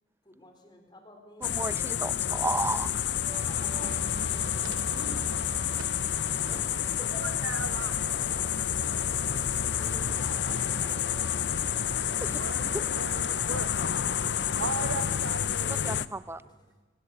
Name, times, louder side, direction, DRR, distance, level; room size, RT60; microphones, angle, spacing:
voice 1, 0.2-1.6 2.9-5.3 6.5-7.5 9.3-11.7 12.1-12.2 16.4-16.7, left 1 dB, 20° left, 4.2 m, -49 dB
sound 1, 1.4-16.1, left 9 dB, 60° left, 0.7 m, -29 dB
voice 2, 1.4-3.0 12.2-12.4 12.7-12.8 15.7-16.4, right 2 dB, 10° right, 0.7 m, -33 dB
Wind instrument woodwind instrument, 3.2-14.8, right 4 dB, 35° right, 5.1 m, -47 dB
sound 2, 3.2-9.3, equal, 65° right, 5.4 m, -53 dB
voice 3, 7.2-8.0 8.9-9.2 12.0-13.7 14.5-16.0, right 4 dB, 85° right, 1.6 m, -38 dB
27.5 x 19.5 x 8.3 m
head